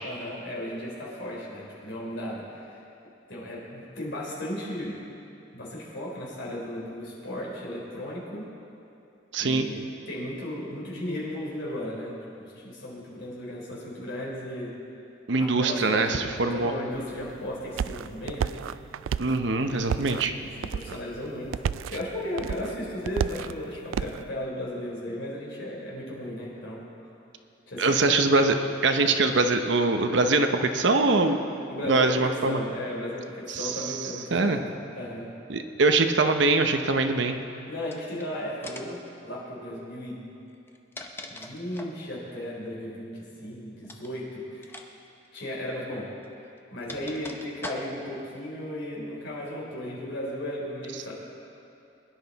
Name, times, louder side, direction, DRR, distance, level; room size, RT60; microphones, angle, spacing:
voice 1, 0.0-2.8 3.3-5.1 5.5-8.5 9.4-14.7 15.4-18.5 20.6-21.5 21.9-26.8 27.7-28.2 29.0-29.1 31.7-35.3 37.7-40.3 41.3-44.7 45.3-46.1 46.7-51.1, left 1 dB, 60° left, -4 dB, 3.7 m, -35 dB
voice 2, 9.3-9.7 15.3-16.7 19.2-20.3 27.8-28.6 28.8-31.4 31.8-32.6 33.5-33.9 34.3-34.6 35.5-37.4, right 3 dB, 65° right, 6 dB, 0.8 m, -23 dB
sound 1, 16.9-24.2, right 7 dB, 80° right, 0.3 m, -33 dB
sound 2, 37.8-38.2 38.6-39.0 40.5-42.0 43.8-44.1 44.6-44.9 45.1-45.3 46.2-48.2, left 2 dB, 10° left, 0.7 m, -41 dB
22.5 x 11.0 x 4.1 m, 2.8 s
head